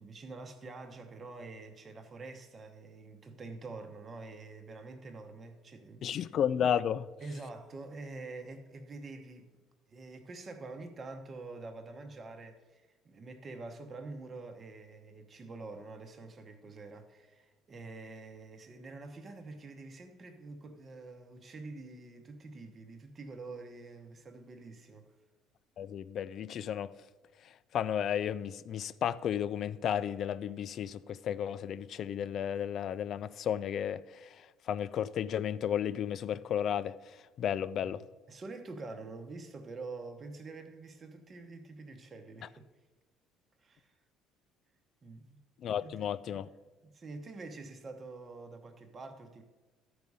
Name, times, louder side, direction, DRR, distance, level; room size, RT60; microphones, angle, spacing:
voice 1, 0.0-6.2 7.2-9.5 9.9-25.1 37.8-42.6 43.6-43.9 45.0-45.4 45.8-46.4 46.8-49.4, right 3 dB, 35° right, 0.9 m, -46 dB
voice 2, 6.0-7.1 25.8-26.9 27.7-34.0 34.7-36.9 37.4-38.0 45.6-46.5, left 9 dB, 55° left, 0.3 m, -33 dB
12.0 x 4.8 x 5.4 m
supercardioid pair, 95°, 0 cm